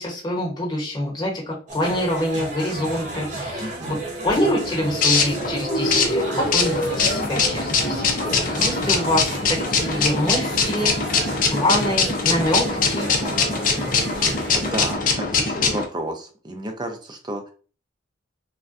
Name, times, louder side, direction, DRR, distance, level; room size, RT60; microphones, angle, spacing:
voice 1, 0.0-4.0 4.2-13.1, left 1 dB, 20° left, -3 dB, 1.0 m, -26 dB
bar with music, 1.7-14.9, right 2 dB, 40° right, 0.9 m, -33 dB
voice 2, 3.6-4.0 14.5-17.5, right 1 dB, 20° right, 5 dB, 0.4 m, -32 dB
sound 1, 4.3-15.8, left 4 dB, 40° left, 0.5 m, -22 dB
3.4 x 2.2 x 2.5 m, 0.38 s
head